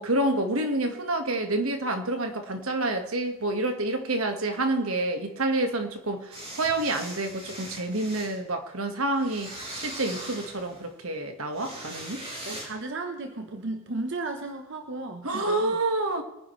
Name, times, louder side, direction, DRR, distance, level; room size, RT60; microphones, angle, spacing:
voice 1, 0.0-12.2 15.2-16.2, right 2 dB, 85° right, 1.7 m, -28 dB
sound 1, 6.3-8.4 9.1-10.9 11.5-12.7, right 1 dB, 30° right, 5.2 m, -40 dB
voice 2, 12.4-15.8, right 2 dB, 60° right, 1.1 m, -35 dB
24.0 x 10.0 x 3.3 m
head